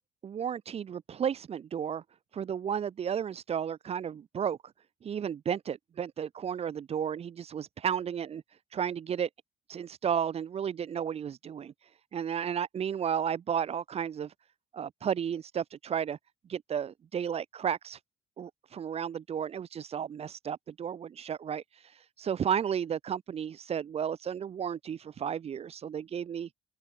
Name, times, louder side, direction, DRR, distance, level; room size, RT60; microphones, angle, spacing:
voice 1, 0.2-2.0 2.3-4.6 5.0-8.4 8.7-9.3 9.7-11.7 12.1-14.3 14.7-16.2 16.5-18.0 18.4-21.6 22.2-26.5, right 8 dB, 35° right, 0.6 m, -33 dB
open air
cardioid pair, 110°, 17 cm